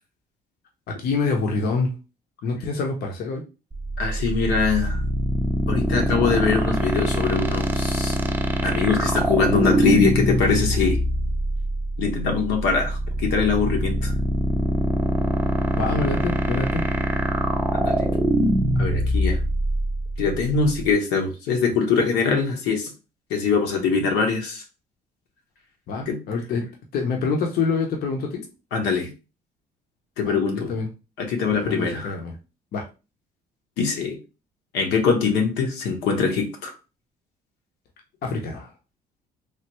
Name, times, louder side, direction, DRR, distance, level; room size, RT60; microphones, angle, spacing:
voice 1, 0.9-1.9 2.4-3.4 15.7-16.8 25.9-26.6 26.9-28.4 30.2-30.3 30.7-30.9 31.6-32.3 32.7-32.8 38.2-38.7, left 4 dB, 65° left, 2 dB, 0.8 m, -26 dB
sound 1, 3.7-20.9, right 1 dB, 10° right, 0.4 m, -23 dB
voice 2, 4.0-5.0 5.7-8.2 8.6-11.0 12.0-14.1 17.7-18.1 18.8-19.4 20.2-22.9 23.3-24.6 26.1-26.2 28.7-29.1 30.2-30.8 31.2-32.1 33.8-34.2 34.7-36.7, left 5 dB, 90° left, 3 dB, 1.0 m, -23 dB
3.3 x 2.4 x 3.0 m, 0.30 s
cardioid pair, 110°, 17 cm